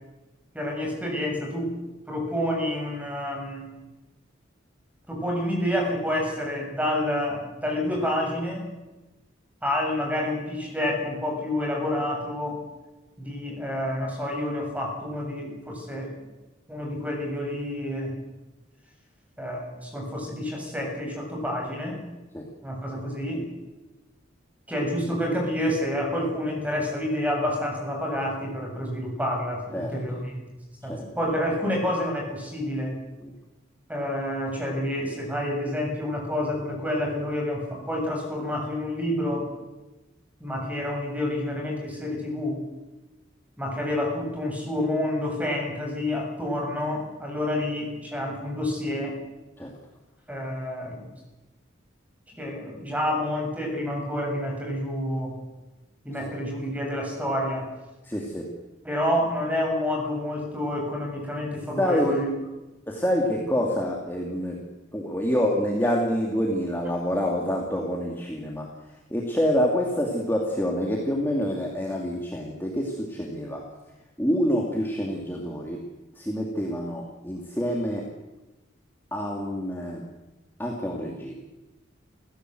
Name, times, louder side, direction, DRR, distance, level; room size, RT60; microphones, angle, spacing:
voice 1, 0.5-1.7 2.1-3.7 5.1-8.7 9.6-12.7 13.2-16.2 16.7-18.2 19.4-22.1 22.6-23.5 24.7-30.4 30.8-33.0 33.9-39.5 40.4-42.6 43.6-49.2 50.3-51.1 52.3-55.4 56.1-57.7 58.8-62.3, left 1 dB, 5° right, 1 dB, 6.8 m, -28 dB
voice 2, 58.0-58.5 61.8-62.0 62.9-64.6 64.9-68.7 69.1-73.6 74.2-75.8 76.2-78.1 79.1-80.0 80.6-81.3, equal, 10° left, -1 dB, 2.7 m, -27 dB
30.0 x 16.0 x 7.9 m, 1.1 s
head